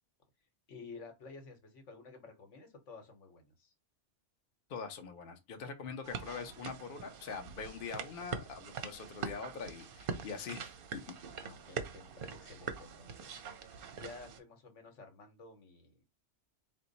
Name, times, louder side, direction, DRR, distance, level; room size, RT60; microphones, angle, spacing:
voice 1, 0.7-3.7 11.4-16.0, left 4 dB, 80° left, 1.3 m, -52 dB
voice 2, 4.7-11.0, left 5 dB, 50° left, 0.8 m, -43 dB
sound 1, 6.0-14.4, right 6 dB, 55° right, 0.7 m, -43 dB
4.4 x 2.2 x 3.9 m
omnidirectional pair, 1.3 m